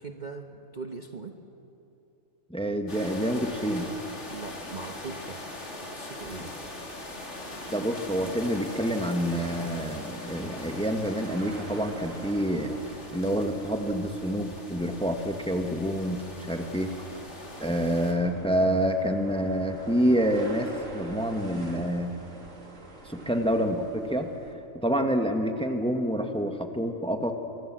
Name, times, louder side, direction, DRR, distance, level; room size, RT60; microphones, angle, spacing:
voice 1, 0.0-1.3 4.3-5.4 5.8-6.5, right 4 dB, 35° right, 4 dB, 1.2 m, -40 dB
voice 2, 2.5-3.9 7.7-12.8 13.1-16.2 16.5-16.9 17.6-22.1 23.0-24.3 24.7-27.3, equal, 5° left, 5 dB, 1.4 m, -27 dB
sound 1, 2.9-18.1, left 1 dB, 55° left, 3.0 m, -42 dB
sound 2, 6.6-24.5, right 2 dB, 65° right, 2.9 m, -47 dB
25.0 x 23.0 x 7.6 m, 2.9 s
omnidirectional pair, 1.5 m